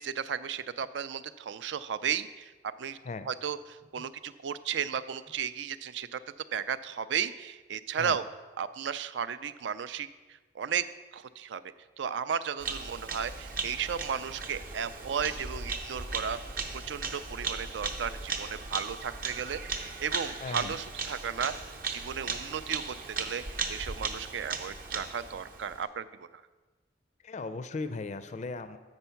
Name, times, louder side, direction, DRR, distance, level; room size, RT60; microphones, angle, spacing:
voice 1, 0.0-2.5 2.8-3.0 3.3-6.2 6.5-8.2 8.6-10.1 10.5-10.8 11.1-11.6 12.0-16.4 16.7-26.3, right 7 dB, 70° right, 14 dB, 0.4 m, -34 dB
Bird vocalization bird call bird song, 12.6-25.8, right 4 dB, 50° right, 0.7 m, -37 dB
voice 2, 20.4-20.8 27.2-28.8, left 3 dB, 40° left, 11 dB, 0.4 m, -37 dB
8.0 x 5.3 x 5.6 m, 1.3 s
head